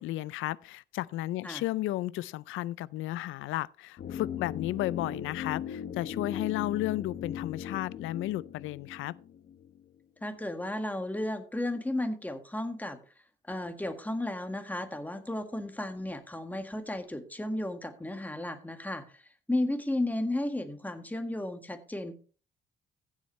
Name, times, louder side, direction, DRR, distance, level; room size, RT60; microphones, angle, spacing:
voice 1, 0.0-9.2, left 16 dB, 85° left, 0.4 m, -33 dB
sound 1, 4.0-10.0 10.2-10.3, left 8 dB, 55° left, 1.2 m, -39 dB
voice 2, 10.2-13.0 13.5-19.2 19.5-22.1, left 1 dB, 10° left, 1.7 m, -34 dB
15.0 x 7.4 x 3.2 m
cardioid pair, 90°, 20 cm